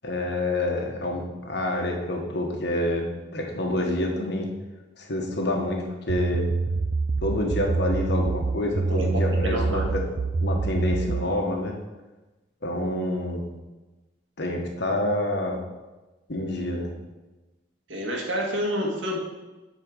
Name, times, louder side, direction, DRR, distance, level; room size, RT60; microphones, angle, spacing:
voice 1, 0.0-4.5 5.0-6.4 7.2-10.0 10.4-11.7 12.6-13.4 14.4-15.6 16.3-16.9, left 1 dB, 60° left, 1 dB, 1.4 m, -27 dB
sound 1, 6.1-11.3, right 3 dB, 45° right, 0.4 m, -26 dB
voice 2, 9.4-9.9 17.9-19.2, equal, 75° right, -1 dB, 1.9 m, -28 dB
9.0 x 4.4 x 6.3 m, 1.1 s
head